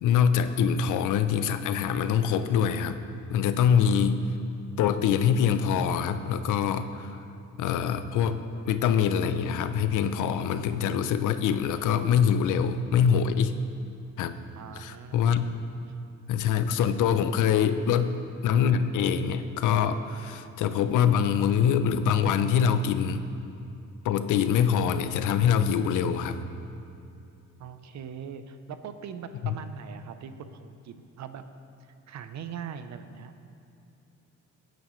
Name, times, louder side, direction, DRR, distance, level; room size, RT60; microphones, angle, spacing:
voice 1, 0.0-3.0 3.3-4.2 4.8-7.2 7.6-13.5 14.2-14.4 14.8-15.5 16.3-23.2 24.0-26.4, left 7 dB, 85° left, 10 dB, 0.7 m, -24 dB
voice 2, 14.5-15.4 27.6-31.4 32.1-33.3, right 7 dB, 65° right, 10 dB, 0.8 m, -41 dB
17.0 x 9.3 x 3.2 m, 2.6 s
cardioid pair, 90°, 30 cm